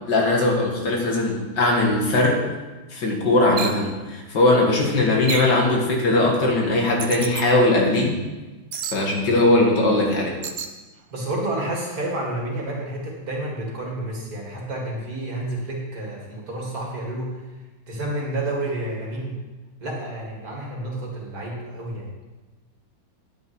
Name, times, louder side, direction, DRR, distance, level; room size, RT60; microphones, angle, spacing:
voice 1, 0.1-2.4 2.9-8.1 8.9-10.3, left 2 dB, 65° left, 0 dB, 2.4 m, -20 dB
sound 1, 3.6-3.8 5.3-5.6 7.0-7.4 8.7-9.0 10.4-10.7, right 7 dB, 85° right, 0.5 m, -30 dB
voice 2, 11.1-17.4 17.9-19.4 19.8-22.1, right 1 dB, 50° right, -2 dB, 2.6 m, -30 dB
10.0 x 9.5 x 4.7 m, 1.2 s
omnidirectional pair, 2.1 m